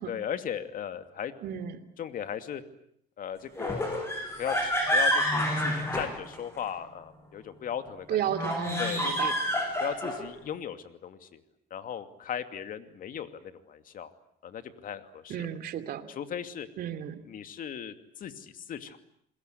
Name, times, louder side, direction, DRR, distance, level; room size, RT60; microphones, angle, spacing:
voice 1, 0.1-1.3 2.0-2.6 3.2-4.1 4.4-8.5 8.8-9.3 9.8-11.4 11.7-14.1 14.4-15.5 16.1-16.7 17.3-19.0, left 9 dB, 55° left, 9 dB, 2.6 m, -37 dB
voice 2, 1.4-1.8 8.1-9.3 15.3-16.1 16.8-17.2, right 10 dB, 65° right, 8 dB, 2.8 m, -33 dB
sound 1, 3.6-6.7 8.3-10.3, equal, 15° left, 7.4 m, -28 dB
27.5 x 21.0 x 9.4 m, 0.68 s
cardioid pair, 110°, 17 cm